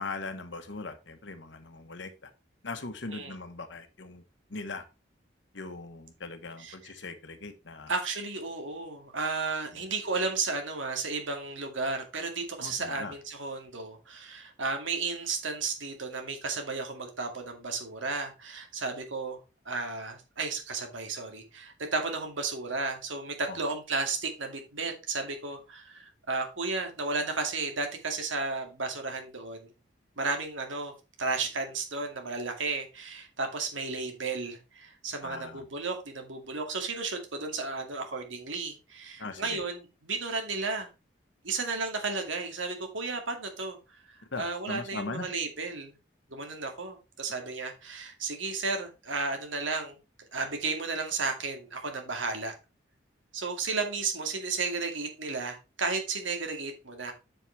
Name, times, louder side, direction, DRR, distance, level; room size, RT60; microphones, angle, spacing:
voice 1, 0.0-2.3 2.6-4.2 4.5-4.8 5.5-7.9 9.7-9.8 12.6-13.1 23.5-23.6 35.2-35.7 39.2-39.6 44.3-45.3, left 3 dB, 75° left, 8 dB, 1.3 m, -40 dB
voice 2, 7.9-19.4 19.7-29.7 30.2-30.9 31.2-40.9 41.4-43.8 44.1-45.9 46.3-50.0 50.3-52.5 53.3-57.1, right 4 dB, 85° right, 4 dB, 2.3 m, -33 dB
7.7 x 7.6 x 3.4 m, 0.28 s
head